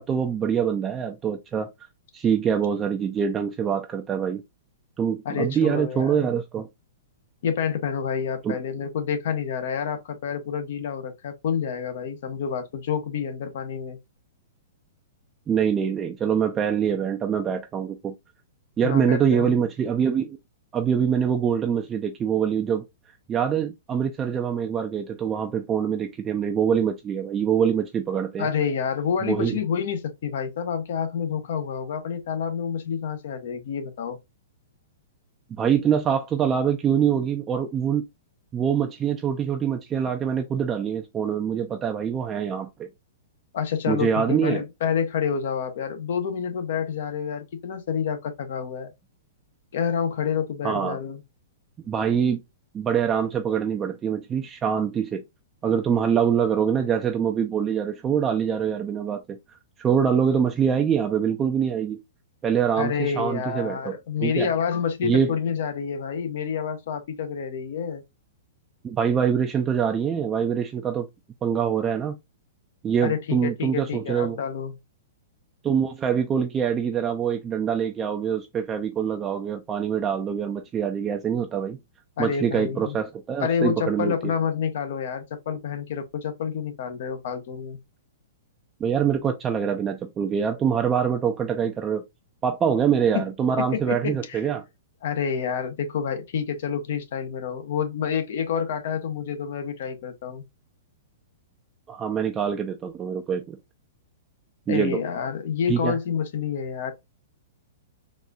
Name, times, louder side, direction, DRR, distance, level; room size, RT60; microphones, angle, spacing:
voice 1, 0.0-1.7 2.1-4.4 5.0-6.7 8.4-8.6 15.5-18.1 18.8-20.4 20.7-28.5 29.2-29.6 35.5-38.0 38.5-42.9 43.9-44.6 50.6-51.0 51.9-52.4 52.7-55.2 55.6-59.2 59.8-62.0 62.4-64.5 65.0-65.3 68.8-71.1 71.4-72.2 72.8-74.4 75.6-81.8 82.2-84.1 88.8-92.0 92.4-94.6 101.9-103.6 104.7-105.0 105.7-105.9, right 7 dB, 20° right, 0.4 m, -24 dB
voice 2, 5.2-6.3 7.4-14.0 18.8-19.5 28.4-34.2 43.5-48.9 49.7-51.2 62.8-68.0 73.0-74.8 82.2-83.0 83.4-87.8 93.1-93.3 93.7-94.4 95.0-100.4 104.7-106.9, left 7 dB, 65° left, 0.9 m, -28 dB
4.1 x 2.5 x 2.3 m
hypercardioid pair, 125°, 0 cm